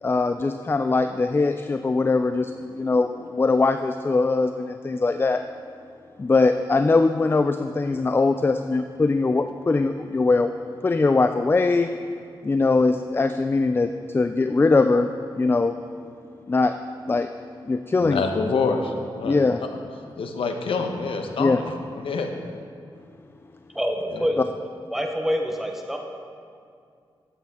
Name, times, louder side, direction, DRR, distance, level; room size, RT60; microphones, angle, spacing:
voice 1, 0.0-5.4 6.2-10.6 10.8-11.9 12.4-15.8 16.5-16.7 17.1-17.3 17.7-18.2 19.2-19.6 21.4-21.6 24.4-24.5, left 3 dB, 25° left, 8 dB, 0.4 m, -21 dB
voice 2, 18.0-19.5 20.2-21.7 22.0-22.3 24.1-24.3, left 4 dB, 80° left, 4 dB, 1.0 m, -26 dB
voice 3, 23.7-24.4 24.9-26.0, equal, 5° right, 2 dB, 0.9 m, -26 dB
13.0 x 8.7 x 3.6 m, 2.3 s
cardioid pair, 70°, 9 cm